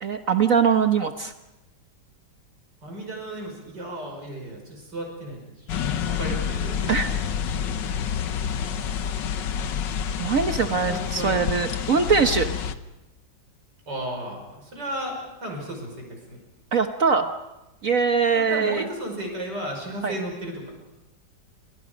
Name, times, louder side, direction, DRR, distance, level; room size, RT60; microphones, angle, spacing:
voice 1, 0.0-1.3 6.9-7.1 10.2-12.5 16.7-17.3 17.8-18.9 20.0-20.1, right 5 dB, 50° right, 6 dB, 1.4 m, -22 dB
voice 2, 2.8-7.0 10.7-11.4 13.9-16.4 18.3-20.7, right 1 dB, 70° right, 2 dB, 6.2 m, -34 dB
sound 1, 5.7-12.7, left 8 dB, 80° left, 1.7 m, -28 dB
29.5 x 25.5 x 5.2 m, 0.95 s
omnidirectional pair, 1.9 m